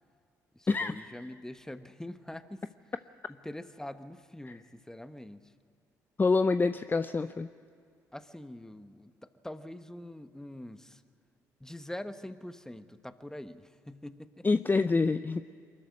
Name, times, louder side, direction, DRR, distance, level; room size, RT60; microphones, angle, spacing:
voice 1, 0.5-2.9 3.3-5.5 8.1-11.0 11.6-14.5, left 1 dB, 5° left, 11 dB, 1.1 m, -44 dB
voice 2, 6.2-7.5 14.4-15.4, left 3 dB, 25° left, 12 dB, 0.6 m, -26 dB
23.5 x 14.0 x 9.7 m, 2.3 s
hypercardioid pair, 55°, 8 cm